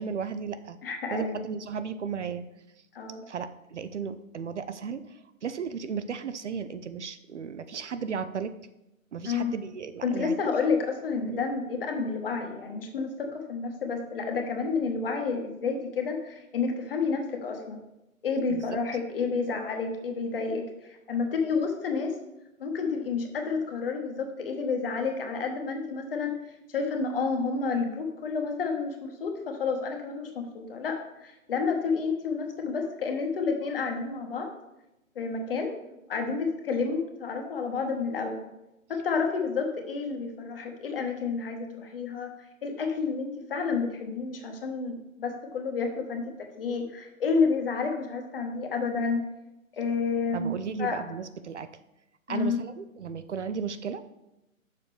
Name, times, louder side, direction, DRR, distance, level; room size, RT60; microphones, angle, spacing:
voice 1, 0.0-0.8 1.1-2.4 3.3-8.5 9.1-10.4 11.3-11.4 18.5-18.8 50.3-51.7 52.3-54.0, right 6 dB, 60° right, 11 dB, 0.5 m, -35 dB
voice 2, 0.8-1.4 2.9-3.2 9.2-9.5 10.0-17.8 18.2-22.2 22.6-26.4 26.7-34.5 35.1-35.7 36.1-38.4 38.9-42.3 42.6-49.2 49.7-50.5 50.8-51.0 52.3-52.6, left 4 dB, 45° left, 4 dB, 1.1 m, -30 dB
6.6 x 6.3 x 3.4 m, 0.90 s
figure-of-eight pair, 140°, 41 cm